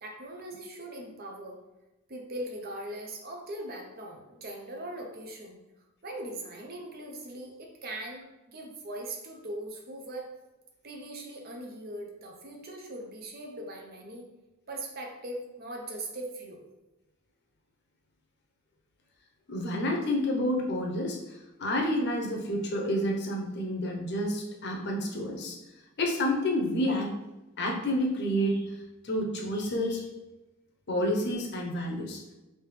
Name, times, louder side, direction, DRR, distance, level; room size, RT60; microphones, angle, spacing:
voice 1, 0.0-1.6 2.1-5.6 6.0-10.3 10.8-14.3 14.7-16.6, right 1 dB, 45° right, 1 dB, 0.6 m, -40 dB
voice 2, 19.5-25.6 26.0-27.1 27.6-28.6 29.0-30.1 30.9-32.2, equal, 50° left, 0 dB, 0.7 m, -29 dB
3.4 x 2.8 x 3.2 m, 1.0 s
head